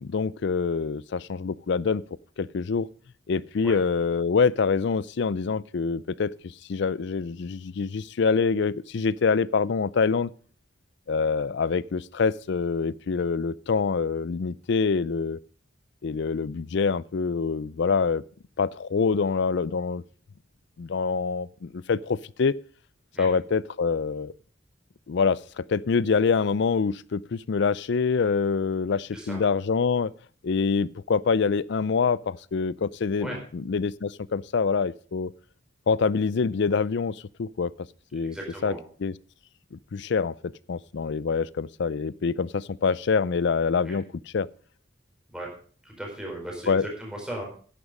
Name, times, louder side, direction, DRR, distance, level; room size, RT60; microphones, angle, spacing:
voice 1, 0.0-2.0 2.4-2.9 3.3-10.3 11.1-15.4 16.0-18.2 18.6-20.0 20.8-22.6 23.2-24.3 25.1-30.1 30.4-35.3 35.9-37.7 38.1-38.4 38.6-38.7 39.0-39.1 39.7-44.0 44.3-44.5 46.7-46.9, left 5 dB, 65° left, 0.4 m, -25 dB
voice 2, 38.2-38.9 43.8-44.0 45.3-45.5 45.8-47.4, right 1 dB, 5° right, 4.5 m, -37 dB
11.0 x 10.0 x 5.3 m
head